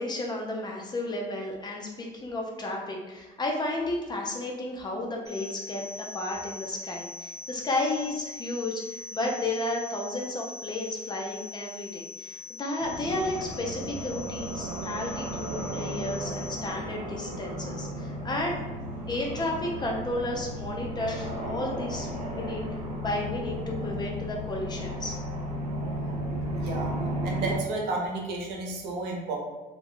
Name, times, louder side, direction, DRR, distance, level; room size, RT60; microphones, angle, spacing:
voice 1, 0.0-18.6 19.1-22.6 23.0-25.2, left 2 dB, 25° left, 0 dB, 0.5 m, -32 dB
sound 1, 5.3-16.7, left 3 dB, 5° right, 1.5 m, -42 dB
sound 2, 12.8-27.6, equal, 40° right, 0.7 m, -34 dB
voice 2, 26.5-26.9 27.2-29.4, right 3 dB, 80° right, 0 dB, 0.7 m, -32 dB
2.3 x 2.1 x 3.6 m, 1.1 s
cardioid pair, 110°, 17 cm